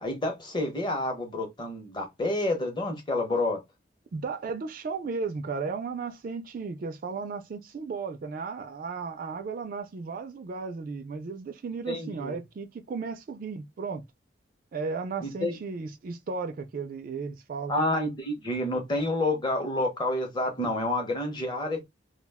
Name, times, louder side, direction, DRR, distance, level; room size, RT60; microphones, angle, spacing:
voice 1, 0.0-3.6 11.9-12.4 15.2-15.5 17.7-21.8, left 1 dB, 25° left, 0.8 m, -29 dB
voice 2, 4.1-14.0 14.7-17.8, right 4 dB, 50° right, 0.3 m, -35 dB
2.2 x 2.1 x 3.4 m
head